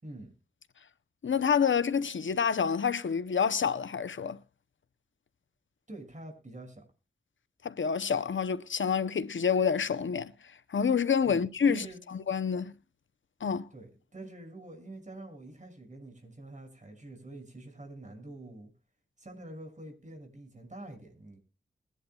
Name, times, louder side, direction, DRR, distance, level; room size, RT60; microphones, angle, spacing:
voice 1, 0.0-0.3 5.9-6.8 11.3-12.0 13.7-18.7 19.2-21.4, right 1 dB, 40° right, 6.2 m, -46 dB
voice 2, 1.2-4.4 7.6-10.3 10.7-11.9 12.3-12.7 13.4-13.7, left 6 dB, 75° left, 0.7 m, -28 dB
22.0 x 11.0 x 2.3 m
wide cardioid pair, 65°, 20 cm